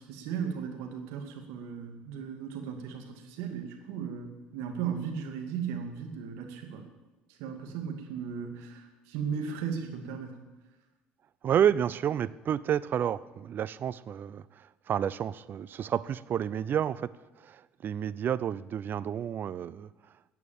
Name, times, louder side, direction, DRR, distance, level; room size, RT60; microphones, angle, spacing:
voice 1, 0.0-6.9 7.4-10.4, right 7 dB, 70° right, 5 dB, 2.2 m, -36 dB
voice 2, 11.4-17.1 17.4-19.9, right 9 dB, 45° right, 18 dB, 0.6 m, -30 dB
14.0 x 8.4 x 7.3 m, 1.1 s
hypercardioid pair, 70°, 5 cm